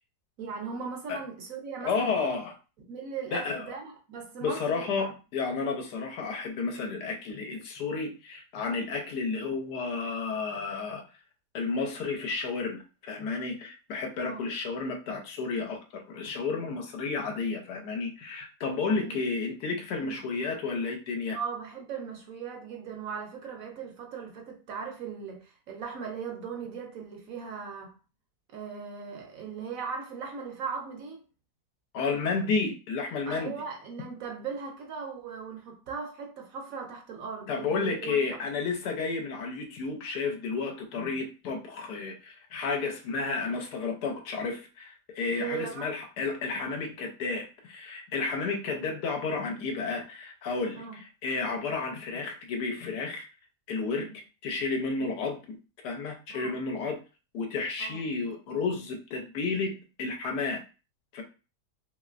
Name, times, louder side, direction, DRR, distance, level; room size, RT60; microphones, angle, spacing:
voice 1, 0.4-2.3 2.9-5.1 14.2-14.5 19.0-19.3 20.0-20.2 21.3-27.9 28.5-31.2 33.3-38.2 45.3-45.9 50.7-51.0 53.9-54.1 54.9-55.1 56.3-56.6 57.8-58.0, right 6 dB, 65° right, 1.0 m, -38 dB
voice 2, 1.8-2.5 3.3-3.7 4.4-11.0 11.5-21.4 31.9-33.5 37.5-53.3 53.7-54.1 54.4-55.6 55.8-57.0 57.3-60.6 61.1-61.2, left 4 dB, 80° left, 1.2 m, -32 dB
3.0 x 2.9 x 2.4 m
omnidirectional pair, 1.7 m